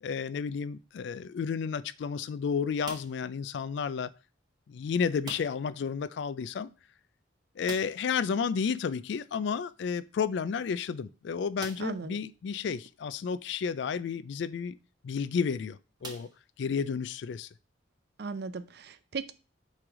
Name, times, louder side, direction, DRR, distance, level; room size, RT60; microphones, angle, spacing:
voice 1, 0.0-4.1 4.7-6.7 7.6-14.8 15.0-16.3 16.6-17.5, left 6 dB, 60° left, 0.3 m, -32 dB
sound 1, 2.8-3.4 5.2-5.8 6.0-6.1 6.4-6.5 7.6-8.2 9.9-10.0 10.7-10.8 11.6-12.1 12.8-12.9 14.9-15.1 16.0-16.9, right 3 dB, 20° right, 0.7 m, -45 dB
voice 2, 11.8-12.2 18.2-19.3, right 4 dB, 55° right, 0.4 m, -37 dB
6.1 x 3.2 x 4.8 m
head